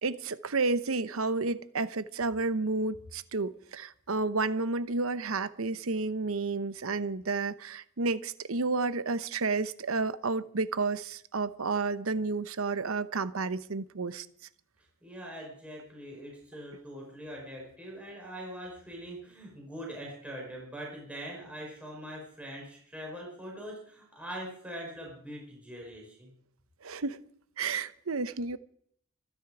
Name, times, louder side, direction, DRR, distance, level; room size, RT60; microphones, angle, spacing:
voice 1, 0.0-14.3 26.8-27.2 27.6-28.6, right 3 dB, 80° right, 0.9 m, -31 dB
voice 2, 15.0-26.3, equal, 5° right, 4.8 m, -42 dB
25.0 x 10.0 x 4.9 m
head